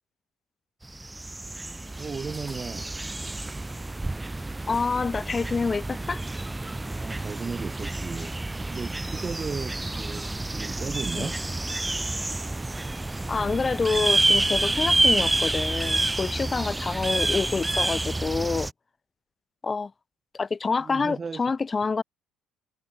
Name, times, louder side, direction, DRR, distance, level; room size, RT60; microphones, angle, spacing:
sound 1, 0.8-18.7, right 2 dB, 10° right, 1.2 m, -28 dB
voice 1, 2.0-2.9 6.9-8.3 8.7-11.4 14.6-14.7 20.8-21.5, right 5 dB, 30° right, 7.7 m, -35 dB
voice 2, 4.7-6.2 11.1-11.3 13.3-18.7 19.6-19.9 20.3-22.0, left 4 dB, 25° left, 2.2 m, -27 dB
cardioid pair, 100°, 0 cm